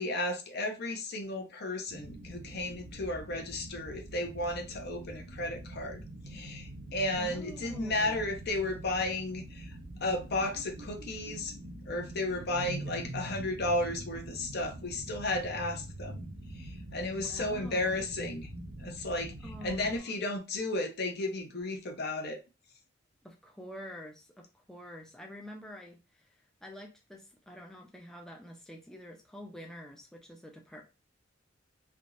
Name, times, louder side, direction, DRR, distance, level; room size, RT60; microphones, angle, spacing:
voice 1, 0.0-9.8 10.0-11.5 11.9-16.3 16.5-18.5 18.8-19.3 19.6-22.4, left 2 dB, 55° left, 3 dB, 0.7 m, -34 dB
sound 1, 1.9-20.0, right 1 dB, 85° right, 0.7 m, -44 dB
voice 2, 7.2-8.3 12.4-12.7 17.2-18.0 19.4-20.2 23.2-26.3 26.6-30.8, equal, 5° left, 1 dB, 0.4 m, -47 dB
3.4 x 2.7 x 2.4 m, 0.28 s
head